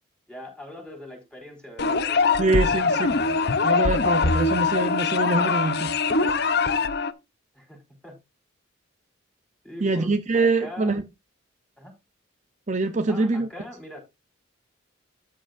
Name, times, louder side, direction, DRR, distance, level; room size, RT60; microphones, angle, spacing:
voice 1, 0.3-2.8 7.5-8.2 9.6-11.0 11.8-11.9 13.1-14.0, left 1 dB, 5° left, 4.6 m, -42 dB
sound 1, 1.8-7.1, left 4 dB, 55° left, 0.7 m, -22 dB
voice 2, 2.4-3.1 3.6-5.9 9.8-11.0 12.7-13.5, right 3 dB, 35° right, 0.6 m, -24 dB
13.0 x 7.5 x 2.6 m
head